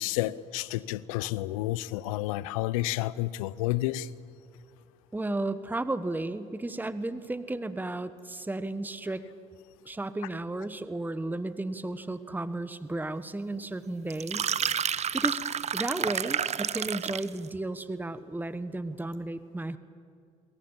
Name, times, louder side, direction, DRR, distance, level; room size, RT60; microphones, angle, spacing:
voice 1, 0.0-4.1, left 16 dB, 80° left, 0.6 m, -30 dB
voice 2, 5.1-9.2 9.8-14.5 15.1-15.4 15.7-19.8, right 2 dB, 10° right, 1.2 m, -33 dB
sound 1, 14.1-17.4, right 8 dB, 40° right, 0.8 m, -30 dB
28.0 x 22.0 x 7.3 m
hypercardioid pair, 55°, 17 cm